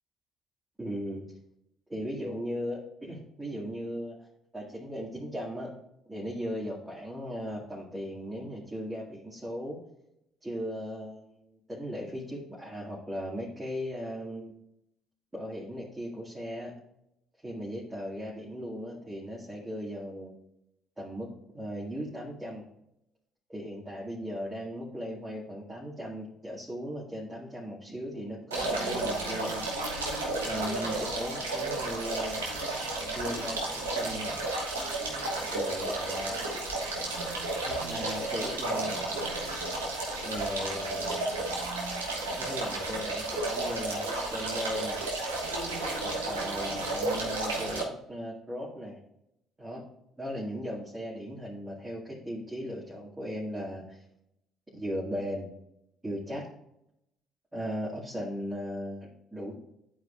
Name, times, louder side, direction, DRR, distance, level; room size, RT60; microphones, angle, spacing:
voice 1, 0.8-1.3 1.9-4.3 4.5-5.7 6.1-9.8 10.4-14.5 15.3-16.7 17.4-20.3 21.0-21.3 21.5-22.6 23.5-29.8 30.4-32.5 33.1-34.4 35.5-36.5 37.6-39.1 40.2-41.3 42.4-45.1 46.0-49.0 49.6-49.8 50.2-54.0 54.7-55.5 56.0-56.5 57.5-59.5, equal, 15° right, -5 dB, 2.2 m, -37 dB
sound 1, 28.5-47.8, right 2 dB, 90° right, 1.3 m, -32 dB
11.0 x 4.7 x 2.5 m, 0.81 s
hypercardioid pair, 55°, 0 cm